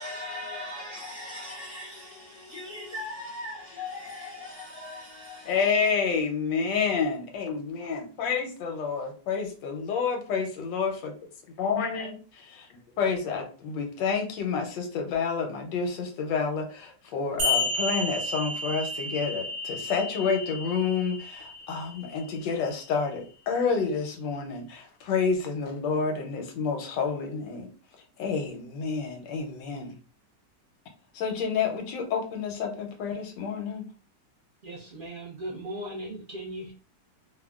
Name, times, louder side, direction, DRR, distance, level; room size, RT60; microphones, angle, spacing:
voice 1, 0.0-5.6, left 2 dB, 65° left, 0.7 m, -39 dB
voice 2, 5.5-11.1 11.6-12.5 13.0-27.7 28.2-29.9 31.1-33.9, left 5 dB, 90° left, 1.4 m, -29 dB
sound 1, 17.4-22.4, left 2 dB, 80° right, 1.4 m, -32 dB
voice 3, 34.6-36.7, right 1 dB, 65° right, 0.5 m, -38 dB
3.5 x 2.1 x 2.3 m
omnidirectional pair, 1.9 m